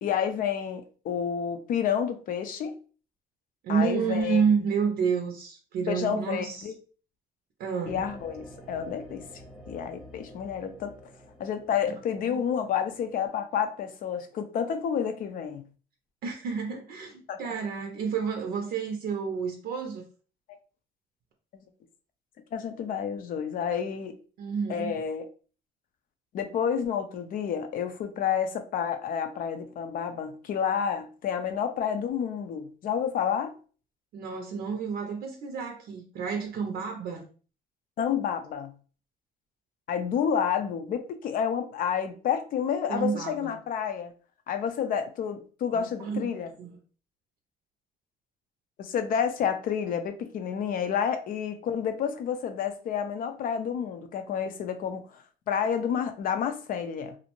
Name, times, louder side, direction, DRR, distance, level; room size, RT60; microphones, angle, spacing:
voice 1, 0.0-2.8 3.7-4.4 5.9-6.8 7.9-9.2 9.7-10.9 11.4-15.6 17.3-17.4 21.5-21.7 22.5-24.2 24.7-25.3 26.3-33.5 38.0-38.7 39.9-44.1 44.5-46.5 48.8-57.2, left 8 dB, 55° left, 0.5 m, -30 dB
voice 2, 3.6-6.7 7.6-8.0 12.3-12.4 16.2-20.0 24.4-24.9 34.1-37.2 42.9-43.5 45.7-46.3 46.6-46.7, right 6 dB, 65° right, 0.5 m, -30 dB
sound 1, 7.8-13.3, equal, ahead, 0.7 m, -49 dB
2.5 x 2.0 x 2.9 m
cardioid pair, 110°, 17 cm